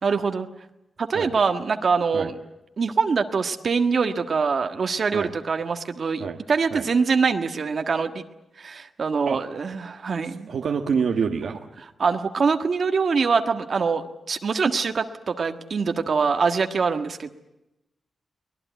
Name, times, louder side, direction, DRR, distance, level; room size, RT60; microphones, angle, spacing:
voice 1, 0.0-0.5 1.0-2.4 2.8-8.2 8.6-10.5 12.0-17.3, right 5 dB, 50° right, 6 dB, 1.6 m, -24 dB
voice 2, 10.2-11.6, right 6 dB, 70° right, 4 dB, 1.5 m, -27 dB
24.0 x 20.5 x 9.2 m, 0.90 s
wide cardioid pair, 150°, 0 cm